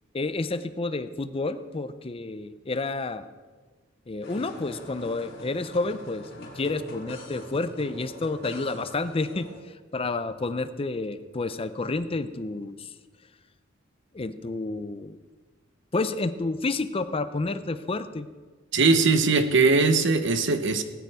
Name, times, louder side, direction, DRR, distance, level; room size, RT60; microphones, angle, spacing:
voice 1, 0.1-3.2 4.1-9.5 9.9-12.9 14.1-15.2 15.9-18.3, left 3 dB, 30° left, 12 dB, 0.5 m, -30 dB
sound 1, 4.2-9.6, left 1 dB, 55° left, 4.0 m, -43 dB
voice 2, 18.7-20.8, right 3 dB, 60° right, 10 dB, 1.0 m, -20 dB
18.0 x 9.4 x 4.8 m, 1.4 s
head